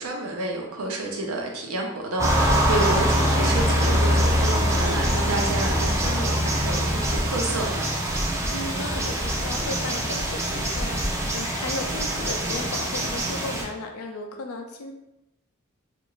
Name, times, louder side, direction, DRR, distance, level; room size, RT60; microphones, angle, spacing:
voice 1, 0.0-7.9, right 2 dB, 85° right, 0 dB, 0.6 m, -29 dB
sound 1, 2.2-13.6, equal, 15° right, 0.4 m, -24 dB
voice 2, 8.5-14.9, left 3 dB, 90° left, 4 dB, 0.4 m, -35 dB
2.5 x 2.4 x 3.0 m, 0.92 s
head